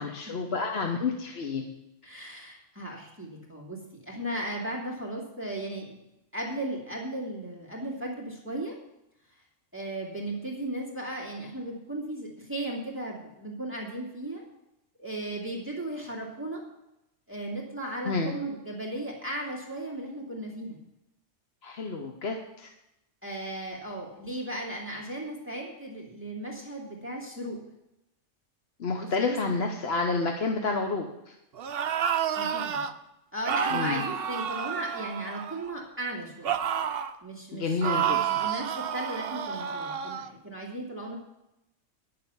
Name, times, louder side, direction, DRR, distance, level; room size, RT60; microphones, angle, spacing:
voice 1, 0.0-1.7 18.0-18.4 21.6-22.7 28.8-31.3 33.7-34.0 37.5-38.2, left 4 dB, 55° left, 3 dB, 1.1 m, -29 dB
voice 2, 2.0-6.0 6.3-8.8 9.7-14.4 15.0-16.6 17.3-20.8 23.2-27.6 29.0-29.4 32.3-32.8 33.3-36.6 37.2-41.2, right 1 dB, 10° right, -3 dB, 2.2 m, -36 dB
sound 1, 31.6-32.9 33.5-35.7 36.4-37.2 37.8-40.3, right 8 dB, 55° right, 0.8 m, -30 dB
11.0 x 6.9 x 6.9 m, 0.87 s
omnidirectional pair, 1.3 m